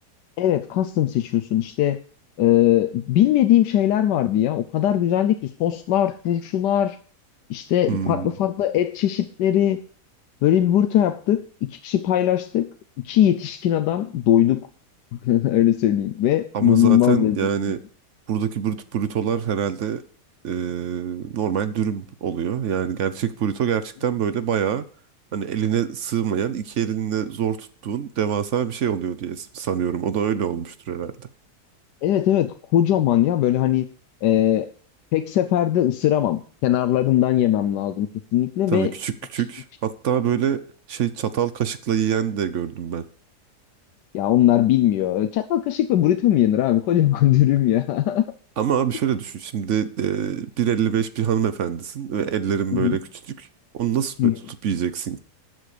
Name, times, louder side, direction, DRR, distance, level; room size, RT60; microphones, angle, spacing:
voice 1, 0.4-2.0 2.4-7.0 7.5-9.8 10.4-12.7 13.0-14.7 15.1-17.7 32.0-33.9 34.2-34.7 35.1-38.9 44.1-48.3 52.7-53.0 54.2-54.4, left 12 dB, 90° left, 9 dB, 1.3 m, -20 dB
voice 2, 7.9-8.3 16.5-17.8 18.3-20.0 20.4-24.8 25.3-31.3 38.7-43.0 48.6-53.5 53.7-54.3 54.6-55.2, right 8 dB, 55° right, 13 dB, 0.9 m, -25 dB
12.5 x 7.7 x 5.0 m, 0.43 s
omnidirectional pair, 1.8 m